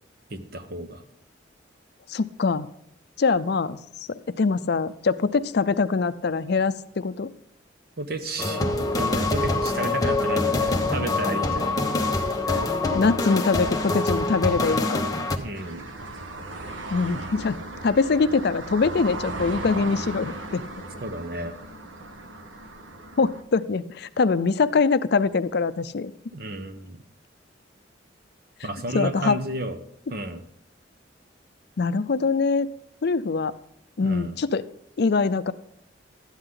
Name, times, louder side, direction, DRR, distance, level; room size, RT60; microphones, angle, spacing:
voice 1, 0.3-1.0 8.0-11.8 15.4-15.8 21.0-21.5 26.3-27.0 28.6-29.8 30.1-30.4 34.0-34.3, right 1 dB, 55° right, 9 dB, 1.0 m, -32 dB
voice 2, 2.1-2.7 3.2-3.8 4.1-7.3 10.0-10.1 12.5-12.6 12.9-15.0 16.9-17.6 17.8-20.6 23.2-26.1 28.9-29.4 31.8-32.7 33.0-33.5 34.0-34.6 35.0-35.5, left 4 dB, 60° left, 14 dB, 0.5 m, -23 dB
sound 1, 8.4-15.4, left 2 dB, 20° left, 1.0 m, -25 dB
sound 2, 15.5-23.4, right 2 dB, 85° right, 1.1 m, -36 dB
13.0 x 9.7 x 3.8 m, 0.72 s
head